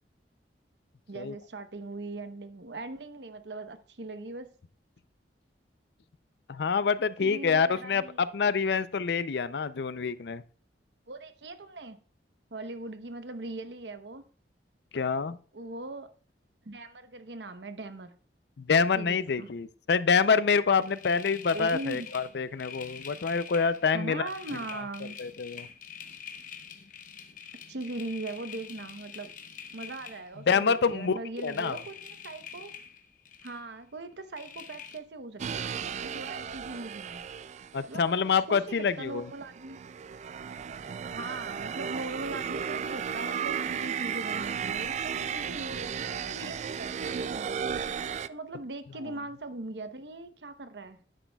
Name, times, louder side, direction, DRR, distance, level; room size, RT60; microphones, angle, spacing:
voice 1, 1.1-4.5 7.2-8.2 11.1-12.0 12.5-14.2 15.5-16.1 16.6-18.1 18.9-19.5 21.5-22.1 23.9-25.2 27.7-29.3 29.7-32.0 32.2-32.7 33.4-37.2 37.8-39.9 41.2-47.6 48.3-51.0, right 2 dB, 70° right, 0.9 m, -40 dB
voice 2, 6.5-10.4 14.9-15.4 18.6-24.3 25.2-25.7 30.5-31.8 37.7-39.3, left 5 dB, 65° left, 0.5 m, -26 dB
sound 1, 20.8-30.9 31.4-33.7 34.4-35.0, left 7 dB, 50° left, 0.9 m, -46 dB
sound 2, 35.4-37.9 38.7-48.3, right 7 dB, 40° right, 0.3 m, -34 dB
12.0 x 10.0 x 2.3 m
head